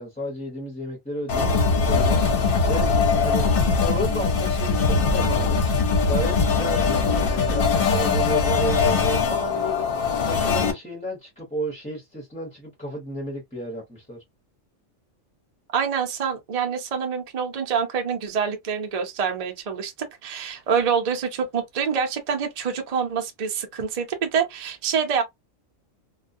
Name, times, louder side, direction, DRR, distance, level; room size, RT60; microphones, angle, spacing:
voice 1, 0.0-2.9 3.2-3.5 3.8-5.7 6.0-9.9 10.2-14.2, equal, 5° left, 0.6 m, -32 dB
sound 1, 1.3-10.7, left 4 dB, 55° left, 0.7 m, -21 dB
voice 2, 15.7-19.9 20.2-25.2, right 6 dB, 45° right, 0.5 m, -26 dB
2.3 x 2.2 x 2.6 m
omnidirectional pair, 1.4 m